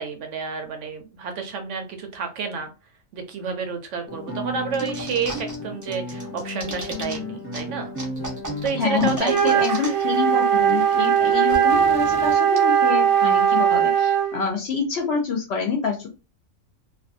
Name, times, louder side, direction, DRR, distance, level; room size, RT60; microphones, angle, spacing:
voice 1, 0.0-2.7 3.1-7.9 8.6-9.9, right 5 dB, 70° right, 6 dB, 0.9 m, -30 dB
Guitar, 4.1-9.2, left 1 dB, 10° left, 1.0 m, -33 dB
sound 1, 4.7-5.6 5.8-7.2 7.5-7.6 8.0-10.2 10.4-10.5 10.7-12.6, right 1 dB, 30° right, 0.3 m, -35 dB
voice 2, 8.8-16.1, left 5 dB, 60° left, 3 dB, 0.7 m, -26 dB
Wind instrument woodwind instrument, 9.3-14.4, right 8 dB, 90° right, 1.1 m, -19 dB
2.5 x 2.2 x 2.6 m, 0.30 s
omnidirectional pair, 1.4 m